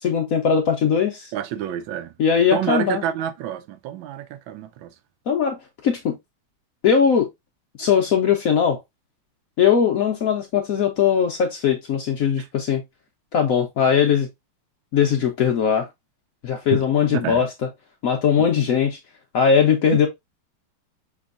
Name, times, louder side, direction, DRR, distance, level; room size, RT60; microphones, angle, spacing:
voice 1, 0.0-1.3 2.2-3.0 5.3-6.2 6.8-7.3 7.8-8.8 9.6-12.8 13.3-14.3 14.9-15.9 16.4-17.5 18.0-19.0 19.3-20.1, left 7 dB, 85° left, 0.7 m, -20 dB
voice 2, 1.3-2.1 2.5-4.9 12.4-12.5 16.7-16.8 17.1-17.4 18.4-18.5 19.9-20.0, right 10 dB, 75° right, 1.3 m, -28 dB
6.0 x 3.2 x 2.4 m
omnidirectional pair, 2.3 m